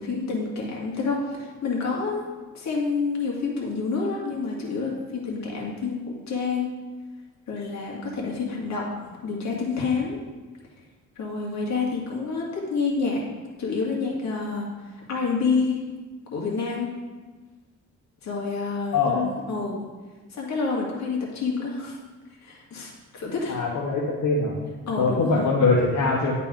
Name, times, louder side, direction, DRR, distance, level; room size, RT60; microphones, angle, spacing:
voice 1, 0.0-2.2 2.5-6.8 7.5-8.9 9.2-10.2 11.2-13.2 13.6-14.7 15.1-15.8 16.3-16.9 18.2-19.9 20.3-22.0 22.4-23.6 24.9-25.5, left 4 dB, 65° left, -3 dB, 2.1 m, -28 dB
voice 2, 23.5-24.5 25.0-26.3, left 3 dB, 80° left, -4 dB, 1.2 m, -22 dB
10.5 x 4.1 x 3.8 m, 1.3 s
cardioid pair, 90°, 30 cm